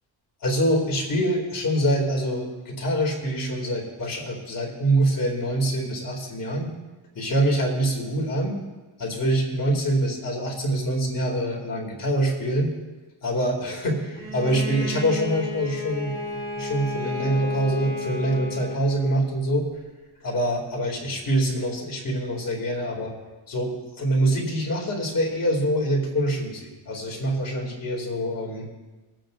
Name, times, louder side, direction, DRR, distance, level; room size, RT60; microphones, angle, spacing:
voice 1, 0.4-6.7 7.1-8.6 9.0-12.7 13.2-19.7 20.2-23.1 23.5-28.7, right 1 dB, 45° left, -1 dB, 2.7 m, -25 dB
Bowed string instrument, 14.2-19.3, left 2 dB, 20° left, 1.9 m, -32 dB
22.0 x 8.9 x 2.6 m, 1.2 s
wide cardioid pair, 165°, 44 cm